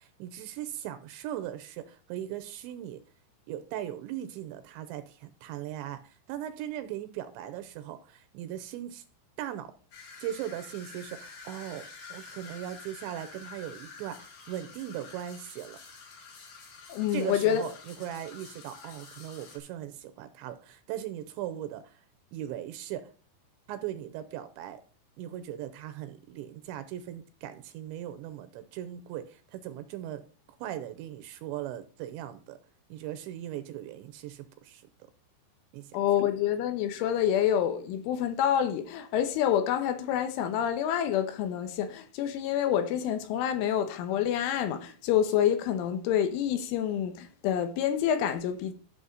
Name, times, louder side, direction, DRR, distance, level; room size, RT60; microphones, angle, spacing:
voice 1, 0.0-3.0 3.5-9.0 9.4-9.7 10.2-11.8 12.1-15.8 17.1-22.0 22.3-23.1 23.7-24.8 25.2-30.2 30.6-32.6 32.9-34.8 35.7-36.0, right 11 dB, 85° right, 2.9 m, -39 dB
sound 1, 9.9-19.6, left 4 dB, 60° left, 4.1 m, -48 dB
voice 2, 16.9-17.6 35.9-48.7, left 10 dB, 80° left, 3.5 m, -27 dB
12.5 x 6.4 x 4.0 m
omnidirectional pair, 5.6 m